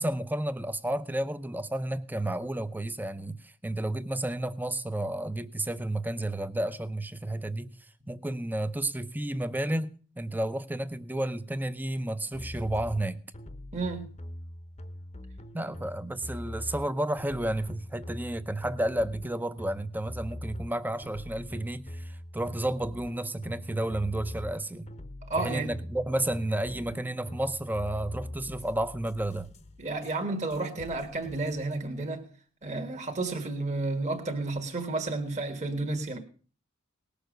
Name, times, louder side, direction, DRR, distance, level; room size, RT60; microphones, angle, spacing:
voice 1, 0.0-7.7 8.1-13.2 15.5-24.9 25.4-29.5, right 1 dB, 10° right, 0.7 m, -31 dB
sound 1, 12.3-13.0 13.3-16.8 17.2-20.7 21.0-24.5 24.9-30.1 30.5-31.8, left 1 dB, 35° left, 0.9 m, -43 dB
voice 2, 13.7-14.1 25.3-25.7 29.8-32.3 32.6-36.2, right 2 dB, 35° right, 1.6 m, -31 dB
19.0 x 6.9 x 6.5 m
head